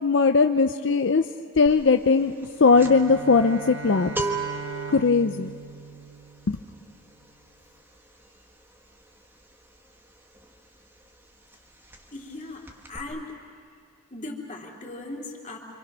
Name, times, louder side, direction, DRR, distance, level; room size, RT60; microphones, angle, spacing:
voice 1, 0.0-1.2 1.6-2.3 2.6-4.1 4.9-5.5 6.5-6.6, left 4 dB, 65° left, 7 dB, 0.6 m, -19 dB
sound 1, 1.7-1.9 2.2-10.8 11.0-11.3 11.5-12.4 12.6-13.0, right 3 dB, 10° right, 1.4 m, -36 dB
Bowed string instrument, 2.5-6.9, right 3 dB, 70° right, 1.0 m, -39 dB
voice 2, 12.1-12.6 12.9-13.3 14.1-15.6, left 2 dB, 40° left, -1 dB, 3.0 m, -37 dB
27.5 x 26.0 x 6.2 m, 2.2 s
head